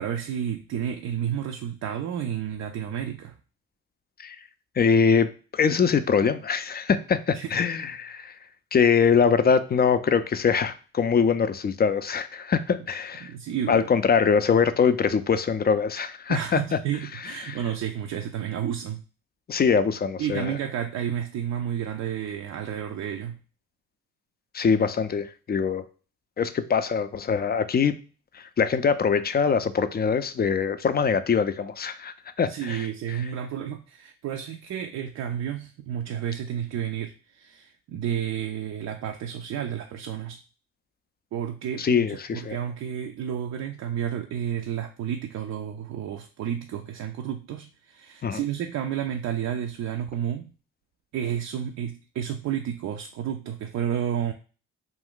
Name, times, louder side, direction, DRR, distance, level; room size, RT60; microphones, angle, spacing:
voice 1, 0.0-3.3 7.3-7.6 13.2-13.8 16.3-19.0 20.2-23.4 32.5-40.4 41.3-50.5 51.1-54.3, right 9 dB, 55° right, 4 dB, 0.4 m, -31 dB
voice 2, 4.8-8.3 8.7-13.3 13.7-16.8 17.4-17.5 19.5-20.5 24.5-25.9 26.4-28.0 28.3-33.2 41.8-42.6 48.2-48.4, left 6 dB, 30° left, 11 dB, 0.4 m, -23 dB
2.5 x 2.2 x 3.7 m, 0.37 s
hypercardioid pair, 45°, 33 cm